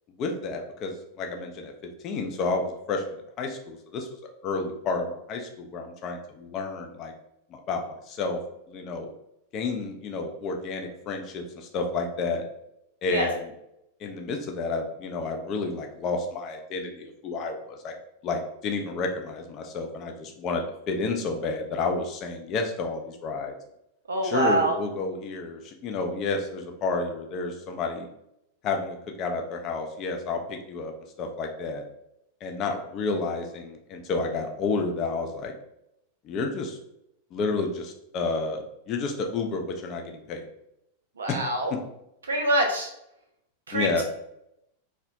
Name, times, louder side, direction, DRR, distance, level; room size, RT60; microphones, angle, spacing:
voice 1, 0.2-1.7 2.0-4.1 4.4-7.1 7.5-8.4 8.7-9.1 9.5-12.4 13.0-13.5 14.0-17.9 18.2-23.5 24.2-28.1 28.6-30.9 31.2-31.8 32.4-35.5 36.2-36.8 37.3-40.5 41.3-41.4 41.7-41.8 43.7-44.0, left 3 dB, 35° left, 3 dB, 0.4 m, -30 dB
voice 2, 24.1-24.8 41.2-41.7 42.3-42.9 43.7-44.0, right 2 dB, 70° right, 2 dB, 0.3 m, -25 dB
2.2 x 2.0 x 2.7 m, 0.80 s
figure-of-eight pair, 90°, 0 cm